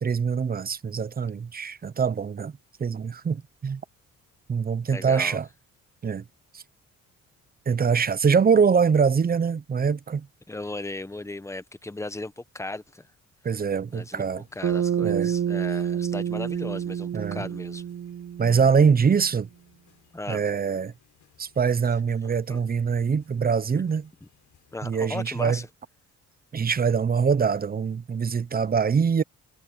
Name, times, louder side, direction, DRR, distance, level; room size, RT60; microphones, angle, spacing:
voice 1, 0.0-2.5 2.8-3.8 4.5-5.5 6.0-6.2 6.5-6.6 7.7-10.3 13.4-14.5 15.0-15.3 17.1-17.4 18.4-19.5 20.3-20.9 21.4-24.1 24.8-25.6 26.5-29.2, right 6 dB, 30° right, 0.8 m, -23 dB
voice 2, 4.9-5.4 10.5-13.1 13.9-14.3 14.5-17.8 20.1-20.4 22.5-22.6 24.7-25.7, left 2 dB, 10° left, 1.2 m, -36 dB
sound 1, 13.9-24.9, left 10 dB, 65° left, 6.4 m, -63 dB
Bass guitar, 14.6-19.0, right 9 dB, 60° right, 1.3 m, -28 dB
cardioid pair, 90°, 30 cm